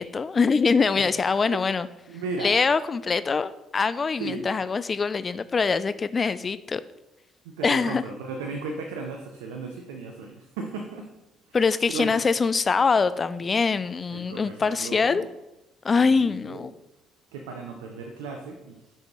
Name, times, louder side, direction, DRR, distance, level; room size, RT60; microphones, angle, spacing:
voice 1, 0.0-1.9 2.4-6.8 7.6-8.0 11.5-15.2 15.8-16.7, left 5 dB, 35° left, 15 dB, 0.3 m, -23 dB
voice 2, 2.1-2.6 4.2-4.5 7.4-11.1 11.5-11.6 11.9-12.2 14.1-15.3 16.0-16.7 17.3-18.8, right 3 dB, 80° right, 3 dB, 0.6 m, -35 dB
7.3 x 5.4 x 3.0 m, 0.96 s
hypercardioid pair, 50°, 0 cm